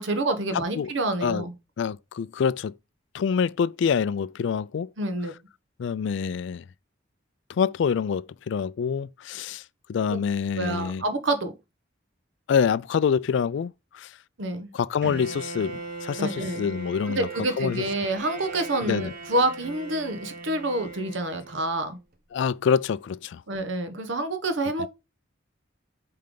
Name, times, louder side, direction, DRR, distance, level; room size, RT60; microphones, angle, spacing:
voice 1, 0.0-1.5 5.0-5.3 10.1-10.2 10.5-11.5 14.4-14.7 16.2-16.7 17.1-22.0 23.5-24.9, right 2 dB, 65° right, 1.1 m, -28 dB
voice 2, 1.8-2.7 3.1-4.9 5.8-6.6 7.6-9.6 9.9-11.0 12.5-14.1 14.7-17.3 17.6-17.8 18.8-19.1 22.3-23.4, left 6 dB, 60° left, 0.3 m, -26 dB
Bowed string instrument, 15.0-21.9, right 3 dB, 45° right, 1.0 m, -39 dB
8.7 x 3.3 x 3.8 m
head